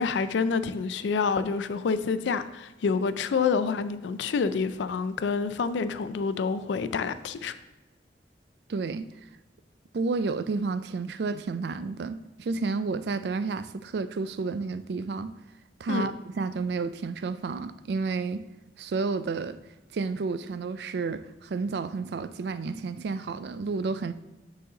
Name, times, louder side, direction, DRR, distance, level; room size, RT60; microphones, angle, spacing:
voice 1, 0.0-7.5 15.9-16.1, left 5 dB, 85° left, 0.4 m, -27 dB
voice 2, 8.7-9.1 9.9-15.3 15.8-18.4 18.8-19.6 19.9-24.1, right 4 dB, 65° right, 0.4 m, -31 dB
9.3 x 4.0 x 3.9 m
head